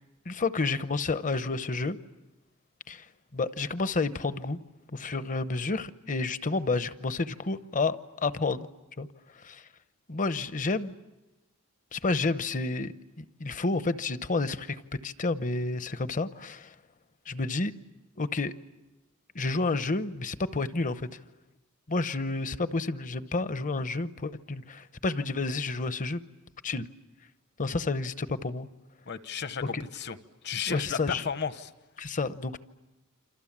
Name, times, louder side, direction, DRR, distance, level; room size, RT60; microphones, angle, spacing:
voice 1, 0.3-2.0 2.9-3.0 3.3-4.6 4.9-8.7 9.0-9.1 9.4-9.6 10.1-10.9 11.9-16.7 17.3-17.7 18.2-18.5 19.3-21.1 21.9-26.2 26.6-26.9 27.6-28.7 29.7-29.8 30.7-31.2 32.0-32.6, left 3 dB, 35° left, 0.8 m, -30 dB
voice 2, 29.1-30.2 30.4-31.7, left 6 dB, 50° left, 1.1 m, -33 dB
28.5 x 26.5 x 7.4 m
head